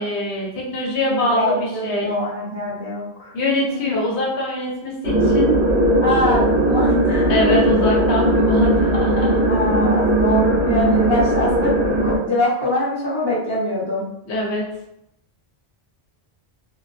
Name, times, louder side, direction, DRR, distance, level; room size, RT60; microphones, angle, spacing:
voice 1, 0.0-2.1 3.3-5.6 7.3-9.5 14.3-14.6, left 1 dB, 85° left, -2 dB, 1.0 m, -23 dB
voice 2, 1.2-3.9 6.0-7.6 8.1-8.6 9.5-11.7 12.0-14.0, left 1 dB, 30° right, -10 dB, 0.6 m, -24 dB
sound 1, 5.0-12.2, right 1 dB, 55° right, 0.9 m, -18 dB
2.4 x 2.1 x 2.5 m, 0.81 s
omnidirectional pair, 1.1 m